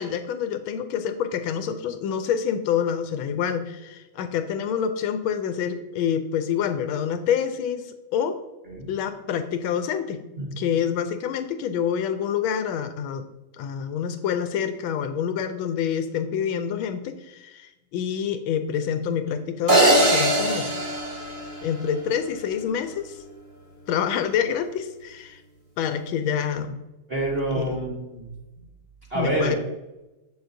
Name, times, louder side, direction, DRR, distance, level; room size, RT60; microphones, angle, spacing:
voice 1, 0.0-8.3 8.9-10.2 10.6-13.2 13.6-20.7 21.6-23.2 23.9-25.4 25.8-26.8 27.5-27.8 29.1-29.6, left 8 dB, 80° left, 9 dB, 1.3 m, -27 dB
sound 1, 19.7-22.0, right 1 dB, 25° right, 1.8 m, -21 dB
voice 2, 27.1-28.4 29.1-29.5, right 1 dB, 40° right, -3 dB, 0.9 m, -27 dB
7.5 x 6.8 x 2.6 m, 1.0 s
omnidirectional pair, 2.3 m